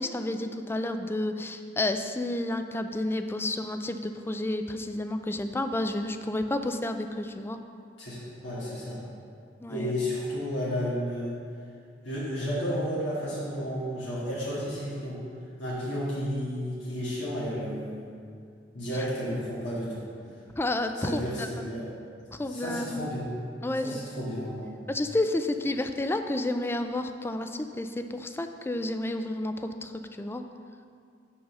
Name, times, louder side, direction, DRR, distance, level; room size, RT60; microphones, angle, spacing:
voice 1, 0.0-7.6 9.6-9.9 18.9-19.1 20.5-21.5 22.3-23.1 23.6-24.0 24.3-24.4 24.9-30.5, left 1 dB, 15° left, 7 dB, 0.3 m, -31 dB
voice 2, 8.0-9.0 9.7-11.4 12.0-15.2 15.6-18.1 18.7-20.0 21.0-21.8 22.5-23.4 23.8-24.7, equal, 85° left, -9 dB, 1.9 m, -32 dB
5.6 x 5.5 x 6.6 m, 2.3 s
head